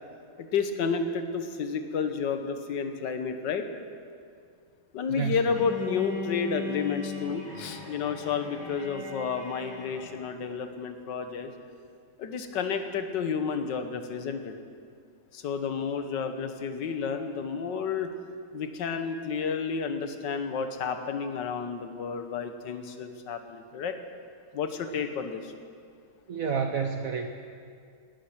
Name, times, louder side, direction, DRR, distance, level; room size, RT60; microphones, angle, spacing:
voice 1, 0.4-3.7 4.9-11.5 12.2-14.6 15.3-18.1 18.5-23.9 24.5-25.5, left 6 dB, 60° left, 7 dB, 1.6 m, -31 dB
Bowed string instrument, 5.5-10.4, left 4 dB, 10° left, 3.0 m, -39 dB
voice 2, 26.3-27.3, right 6 dB, 60° right, 5 dB, 0.9 m, -29 dB
18.5 x 12.0 x 6.0 m, 2.3 s
omnidirectional pair, 2.3 m